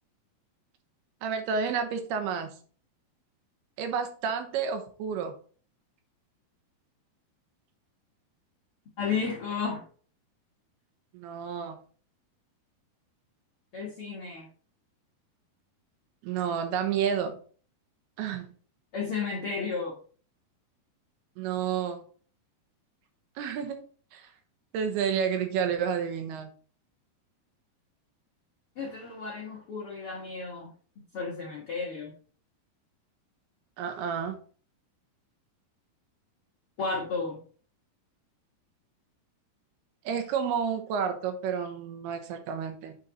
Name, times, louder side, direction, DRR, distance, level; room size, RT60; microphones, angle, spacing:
voice 1, 1.2-2.6 3.8-5.3 11.1-11.8 16.2-17.4 18.2-18.5 21.4-22.1 23.4-24.3 24.7-26.5 33.8-34.4 40.1-43.0, right 7 dB, 90° right, 7 dB, 2.9 m, -30 dB
voice 2, 9.0-9.8 13.7-14.5 18.9-20.0 28.7-30.7 31.1-32.1 36.8-37.4, left 5 dB, 65° left, -4 dB, 1.4 m, -33 dB
8.9 x 4.1 x 4.0 m, 0.43 s
omnidirectional pair, 4.5 m